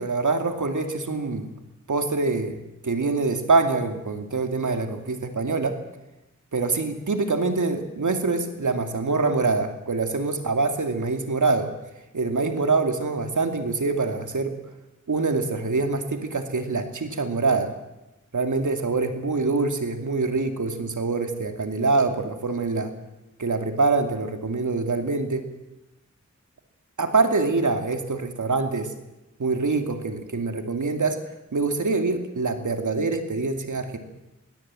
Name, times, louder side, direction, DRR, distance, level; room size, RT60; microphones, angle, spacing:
voice 1, 0.0-1.5 1.9-2.6 2.8-5.8 6.5-11.7 12.1-14.5 15.1-17.7 18.3-22.9 23.4-25.5 27.0-28.9 29.4-31.2 31.5-34.0, right 3 dB, 80° right, 6 dB, 2.5 m, -25 dB
23.0 x 17.5 x 7.6 m, 0.96 s
cardioid pair, 45°, 30 cm